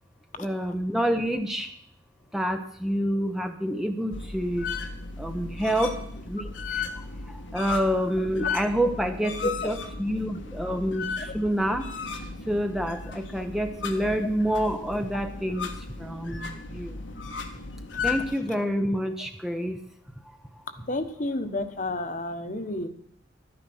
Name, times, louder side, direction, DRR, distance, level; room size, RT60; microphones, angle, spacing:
voice 1, 0.4-1.7 2.3-4.7 5.2-5.9 6.3-6.4 7.5-11.0 11.3-11.8 12.5-15.7 16.0-16.9 18.0-19.8, equal, ahead, 6 dB, 0.8 m, -27 dB
sound 1, 4.1-18.3, left 5 dB, 75° left, 1.6 m, -35 dB
voice 2, 9.4-9.8 10.2-10.3 11.2-11.3 20.9-22.9, left 2 dB, 40° left, 8 dB, 1.3 m, -30 dB
13.0 x 10.0 x 6.2 m, 0.67 s
head